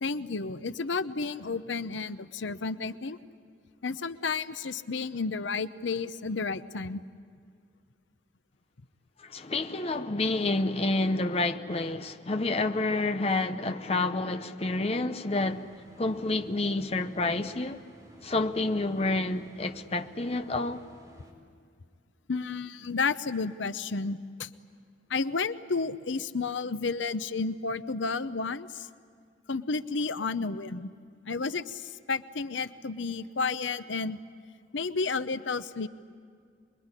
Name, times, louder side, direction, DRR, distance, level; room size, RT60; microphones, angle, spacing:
voice 1, 0.0-3.2 3.8-7.0 12.9-13.0 22.3-24.5 25.1-28.9 29.5-30.9 31.3-34.2 34.7-35.9, left 4 dB, 80° left, 0.8 m, -31 dB
voice 2, 9.2-15.7 16.0-17.8 18.2-20.8, left 2 dB, 30° left, 0.8 m, -29 dB
sound 1, 15.3-21.3, equal, 15° right, 5.0 m, -53 dB
26.0 x 22.0 x 9.8 m
head